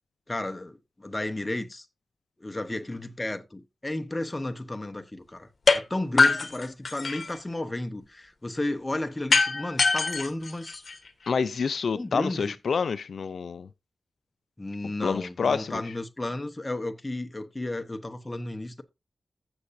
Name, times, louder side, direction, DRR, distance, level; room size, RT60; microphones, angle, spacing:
voice 1, 0.3-1.9 2.4-10.8 11.9-12.5 14.6-18.8, left 1 dB, 15° left, 1.0 m, -33 dB
sound 1, 5.7-5.8 6.2-7.4 9.3-11.3, left 4 dB, 45° left, 1.3 m, -23 dB
voice 2, 11.3-13.7 15.0-15.8, left 5 dB, 75° left, 0.4 m, -28 dB
15.0 x 6.8 x 2.6 m
wide cardioid pair, 150°, 0 cm